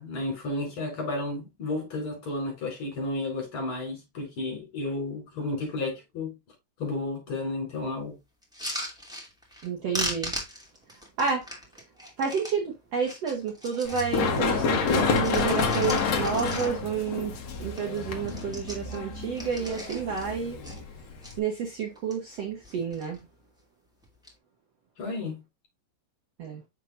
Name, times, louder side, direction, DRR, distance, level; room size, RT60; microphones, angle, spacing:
voice 1, 0.0-6.4 6.8-8.2 25.0-25.4, left 2 dB, 30° left, 5.2 m, -32 dB
sound 1, 8.4-9.7 9.9-12.6 13.0-14.2 14.5-17.0 17.4-17.5 17.7-18.0 18.2-20.3 20.6-21.3 21.9-22.4 22.6-23.2 24.0-24.3, equal, ahead, 1.3 m, -38 dB
voice 2, 9.6-10.3 11.2-11.5 12.2-17.3 17.6-20.6 21.4-23.2 26.4-26.6, right 6 dB, 75° right, 1.4 m, -30 dB
Run, 13.8-21.4, left 5 dB, 60° left, 1.8 m, -29 dB
7.4 x 6.5 x 2.6 m
omnidirectional pair, 4.9 m